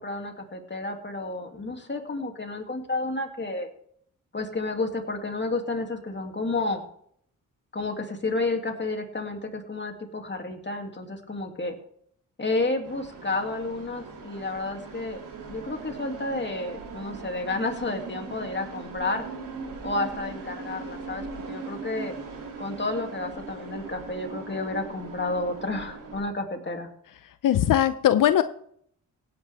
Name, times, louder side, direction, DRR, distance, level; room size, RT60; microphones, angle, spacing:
voice 1, 0.0-3.7 4.3-6.8 7.7-11.7 12.4-15.2 15.5-19.2 19.8-22.1 22.6-26.9, left 2 dB, 35° left, 3 dB, 2.6 m, -31 dB
sound 1, 12.8-26.2, right 4 dB, 85° right, 2.8 m, -40 dB
voice 2, 27.4-28.4, left 11 dB, 85° left, 11 dB, 0.6 m, -20 dB
17.0 x 9.4 x 3.5 m, 0.65 s
cardioid pair, 60°, 32 cm